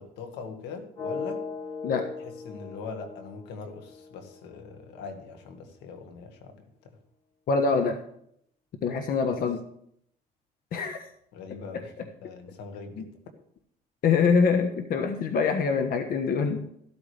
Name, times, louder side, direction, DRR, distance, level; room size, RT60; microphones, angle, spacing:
voice 1, 0.0-1.4 2.2-6.6 6.8-7.0 9.3-9.5 11.3-11.9 12.2-13.1, left 4 dB, 90° left, 6 dB, 1.9 m, -41 dB
sound 1, 0.9-4.9, left 4 dB, 35° left, 6.4 m, -38 dB
voice 2, 7.5-8.0 8.8-9.6 10.7-11.0 13.0-13.1 14.0-16.7, left 5 dB, 60° left, 6 dB, 1.3 m, -24 dB
14.0 x 12.5 x 3.4 m, 0.69 s
cardioid pair, 110°, 17 cm